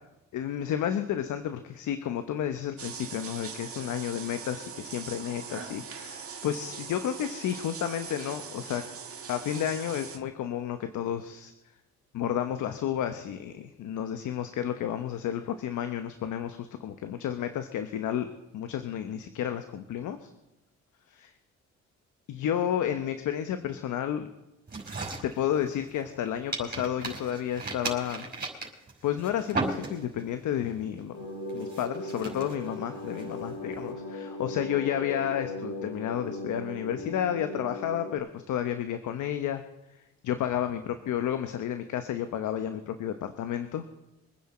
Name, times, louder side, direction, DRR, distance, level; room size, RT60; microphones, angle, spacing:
voice 1, 0.3-8.8 9.3-11.5 12.1-20.3 22.3-24.3 25.2-28.3 29.0-31.2 31.5-39.6 40.2-43.8, left 10 dB, 80° left, 8 dB, 1.1 m, -31 dB
sound 1, 2.8-10.2, right 6 dB, 50° right, 1.9 m, -41 dB
sound 2, 24.7-26.2 26.5-30.3 30.7-31.0 31.5-33.8, right 3 dB, 30° right, 5.4 m, -36 dB
sound 3, 31.1-38.2, left 1 dB, 50° left, 3.0 m, -38 dB
25.0 x 9.7 x 4.4 m, 0.92 s
cardioid pair, 90°, 30 cm